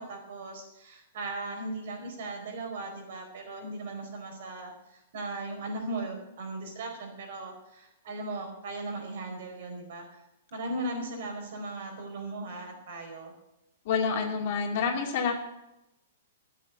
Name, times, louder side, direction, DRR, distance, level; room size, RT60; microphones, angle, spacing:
voice 1, 0.0-10.2 10.5-13.3, right 2 dB, 55° right, 3 dB, 4.6 m, -38 dB
voice 2, 13.9-15.3, left 6 dB, 50° left, 2 dB, 2.4 m, -28 dB
13.5 x 8.4 x 8.1 m, 0.90 s
figure-of-eight pair, 110°, 0 cm